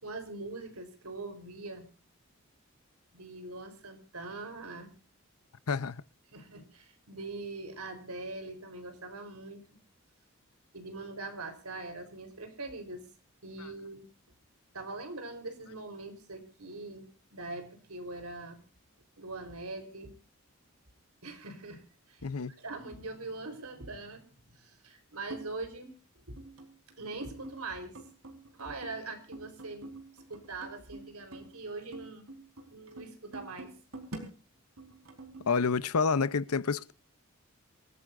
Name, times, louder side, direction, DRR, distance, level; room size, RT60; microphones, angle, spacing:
voice 1, 0.0-1.9 3.1-4.9 6.3-9.6 10.7-13.1 13.4-14.0 14.7-18.6 19.2-20.1 21.2-21.8 22.1-22.3 22.6-24.3 24.5-25.9 26.3-26.4 27.0-28.0 28.5-29.9 30.3-32.2 32.7-33.7, right 3 dB, 90° right, 4.0 m, -42 dB
voice 2, 5.7-6.0 22.2-22.6 35.4-36.9, left 5 dB, 85° left, 0.7 m, -28 dB
sound 1, 25.3-25.5 26.4-26.9 27.2-27.7 28.0-31.6 31.9-34.3 34.8-35.6, right 2 dB, 75° right, 4.5 m, -46 dB
27.0 x 15.0 x 2.6 m
head